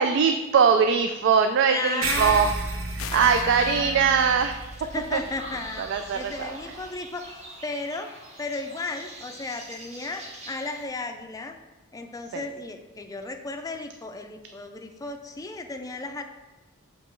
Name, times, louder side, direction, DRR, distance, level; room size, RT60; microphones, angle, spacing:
voice 1, 0.0-2.5 3.0-4.6 5.8-6.6 12.3-12.4, right 6 dB, 60° right, 7 dB, 0.3 m, -21 dB
voice 2, 1.6-2.5 3.1-4.4 4.9-5.8 6.1-7.4 7.6-8.1 8.4-11.6 11.9-16.2, left 3 dB, 15° left, 5 dB, 0.4 m, -34 dB
sound 1, 2.0-6.9, right 2 dB, 80° right, 0.8 m, -34 dB
sound 2, 3.0-3.6, left 9 dB, 80° left, 0.4 m, -38 dB
sound 3, 3.2-10.9, right 1 dB, 35° right, 1.2 m, -45 dB
7.3 x 3.0 x 4.5 m, 1.1 s
head